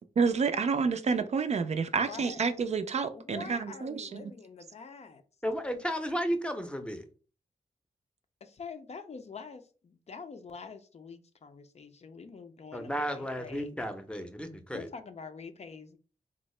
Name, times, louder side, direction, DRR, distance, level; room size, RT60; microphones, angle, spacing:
voice 1, 0.2-4.3, right 5 dB, 50° right, 0.4 m, -29 dB
voice 2, 2.0-2.4 3.1-5.2 8.4-13.8 14.7-16.0, left 5 dB, 50° left, 0.5 m, -45 dB
voice 3, 5.4-7.0 12.7-14.9, equal, 5° left, 0.6 m, -33 dB
3.5 x 2.0 x 3.1 m
cardioid pair, 55°, 14 cm